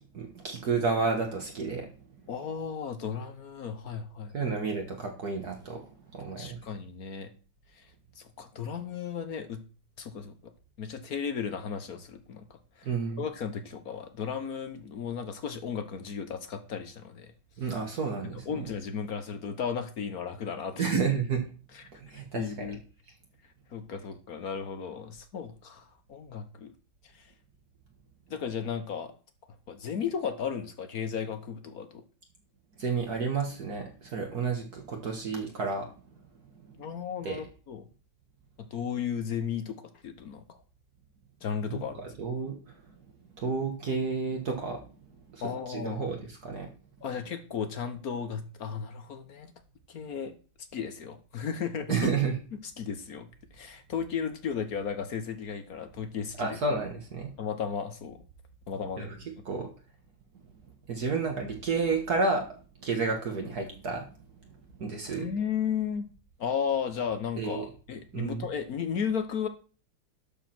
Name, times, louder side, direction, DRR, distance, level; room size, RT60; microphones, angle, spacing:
voice 1, 0.1-1.9 4.3-6.6 12.8-13.3 17.6-18.7 20.8-21.4 22.0-22.7 32.8-35.9 36.6-36.8 37.2-37.4 41.7-41.8 42.2-42.8 43.4-44.8 45.3-46.7 51.9-52.3 56.4-57.3 59.0-59.2 59.5-59.7 60.9-64.1 64.8-65.3 67.4-67.7 68.1-68.5, right 4 dB, 55° right, 2 dB, 2.0 m, -31 dB
voice 2, 2.3-4.3 6.4-7.3 7.7-7.9 8.2-9.6 10.0-10.5 10.8-12.4 12.8-12.9 13.2-17.3 18.5-20.9 21.7-22.8 23.7-26.7 27.1-27.3 28.3-29.1 29.7-32.0 36.8-37.9 38.6-40.6 41.4-42.0 45.4-46.1 47.0-49.5 49.9-50.4 50.7-52.1 52.5-53.3 53.5-56.6 57.4-58.2 58.7-59.1 65.2-66.1 66.4-69.5, left 7 dB, 55° left, 9 dB, 1.2 m, -35 dB
12.0 x 4.8 x 5.9 m, 0.38 s
omnidirectional pair, 2.1 m